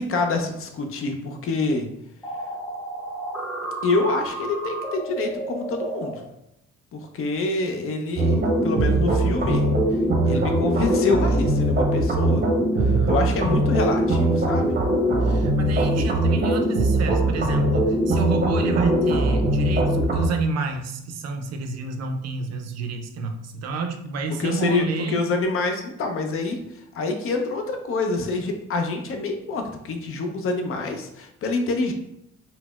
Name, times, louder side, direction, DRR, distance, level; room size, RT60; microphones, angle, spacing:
voice 1, 0.0-1.9 3.8-6.2 6.9-9.7 10.2-12.4 13.1-14.8 24.4-26.6 26.9-31.9, left 3 dB, 45° left, 4 dB, 0.5 m, -26 dB
sound 1, 2.2-6.1, right 2 dB, 5° right, 1.0 m, -32 dB
sound 2, 8.2-20.3, right 1 dB, 30° right, 0.7 m, -21 dB
voice 2, 10.2-10.6 12.7-13.1 15.2-25.2, right 4 dB, 60° right, 5 dB, 0.4 m, -29 dB
4.0 x 2.0 x 2.3 m, 0.80 s
cardioid pair, 90°, 30 cm